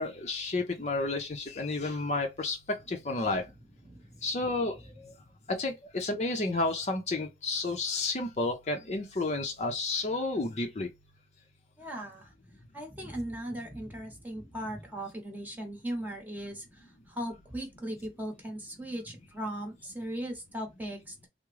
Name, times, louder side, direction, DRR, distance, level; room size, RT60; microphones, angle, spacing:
voice 1, 0.0-3.4 4.2-4.8 5.5-10.9, left 2 dB, 40° left, 0.5 m, -31 dB
voice 2, 3.8-4.6 11.8-12.3 12.7-21.3, right 1 dB, 10° right, 0.9 m, -38 dB
3.5 x 2.0 x 3.1 m
head